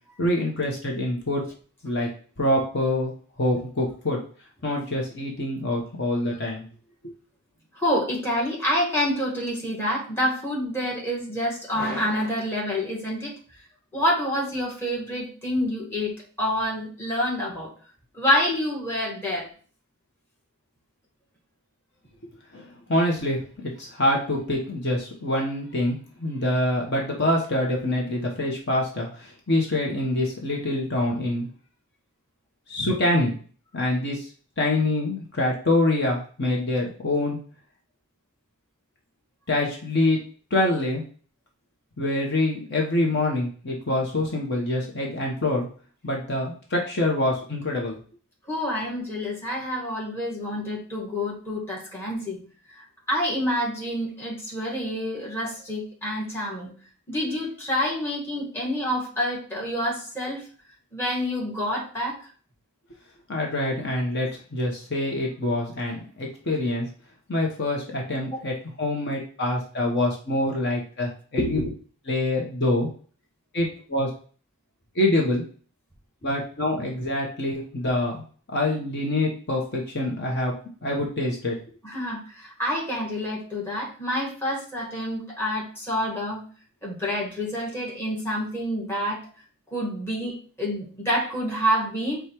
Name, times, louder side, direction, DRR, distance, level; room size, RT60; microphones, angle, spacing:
voice 1, 0.2-1.4 1.8-2.1 2.4-3.1 3.4-4.2 4.6-6.7 7.0-7.1 22.5-31.5 32.7-33.3 33.7-34.3 34.6-37.4 39.5-40.2 40.5-41.0 42.0-45.7 46.0-48.0 63.3-66.9 67.3-71.6 72.1-72.9 73.5-74.1 74.9-75.4 76.2-78.2 78.5-80.5 80.8-81.6, left 1 dB, 50° left, 0 dB, 0.9 m, -25 dB
voice 2, 7.7-13.3 13.9-17.7 18.1-19.5 48.5-52.4 53.1-56.7 57.1-60.4 60.9-62.2 68.3-68.4 71.4-71.7 81.8-86.4 86.8-89.2 89.7-92.2, equal, 10° left, -4 dB, 1.5 m, -27 dB
4.9 x 2.3 x 4.4 m, 0.41 s
head